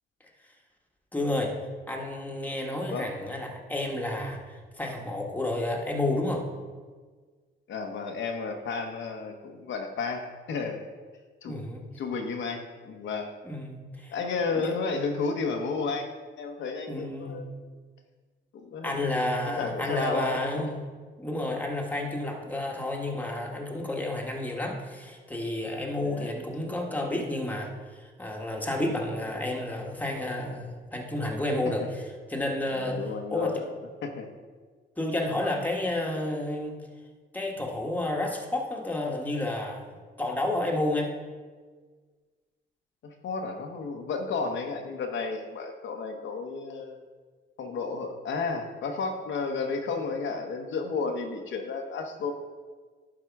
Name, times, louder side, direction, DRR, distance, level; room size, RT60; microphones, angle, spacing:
voice 1, 1.1-1.5 1.9-6.5 11.5-11.8 13.4-14.2 14.5-14.8 16.9-17.4 18.8-20.9 21.2-33.6 35.0-36.8 37.3-39.9 40.2-41.1, left 1 dB, 10° left, 0 dB, 1.6 m, -31 dB
voice 2, 7.7-10.9 11.4-11.6 12.0-13.3 14.1-16.1 16.4-17.5 18.5-18.9 19.6-20.7 26.1-26.3 32.7-33.6 34.0-34.3 35.4-35.5 43.2-47.0 47.6-52.3, left 4 dB, 70° left, 3 dB, 1.1 m, -32 dB
11.0 x 4.8 x 4.8 m, 1.5 s
cardioid pair, 90°, 20 cm